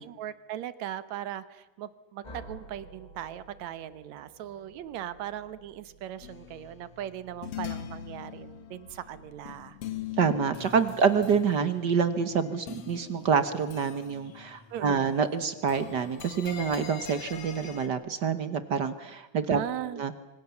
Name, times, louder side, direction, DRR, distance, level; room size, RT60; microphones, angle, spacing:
voice 1, 0.0-9.8 14.7-15.2 19.5-20.0, right 11 dB, 75° right, 14 dB, 2.3 m, -39 dB
sound 1, 2.2-6.9, right 1 dB, 15° left, 7.2 m, -51 dB
sound 2, 6.2-15.3 15.5-17.9, left 10 dB, 60° left, 2.3 m, -43 dB
voice 2, 10.2-19.6 20.0-20.1, right 6 dB, 55° right, 12 dB, 1.3 m, -27 dB
26.0 x 25.0 x 7.1 m, 1.0 s
omnidirectional pair, 3.3 m